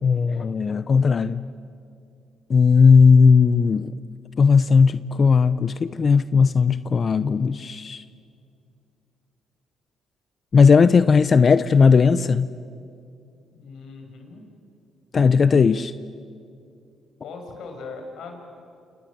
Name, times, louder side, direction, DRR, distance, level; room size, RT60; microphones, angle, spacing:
voice 1, 0.0-1.4 2.5-3.9 4.4-8.0 10.5-12.5 15.1-15.9, left 5 dB, 45° left, 14 dB, 0.6 m, -17 dB
voice 2, 13.5-14.5 17.2-18.4, left 4 dB, 75° left, 4 dB, 5.8 m, -39 dB
28.5 x 28.0 x 7.5 m, 2.5 s
cardioid pair, 90°, 0 cm